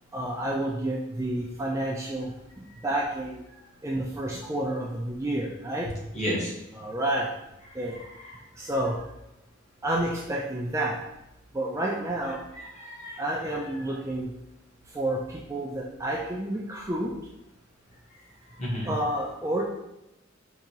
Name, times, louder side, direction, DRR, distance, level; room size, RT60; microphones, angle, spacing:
voice 1, 0.1-2.3 2.8-3.4 3.8-5.9 6.8-7.3 7.8-8.0 8.6-9.0 9.8-11.0 11.5-12.4 13.2-14.3 14.9-17.1 18.9-19.7, right 1 dB, 15° right, -3 dB, 0.4 m, -29 dB
voice 2, 6.1-6.5 7.9-8.7 12.5-13.2 18.6-19.0, equal, 35° left, -4 dB, 1.1 m, -33 dB
4.8 x 2.7 x 2.8 m, 0.89 s
head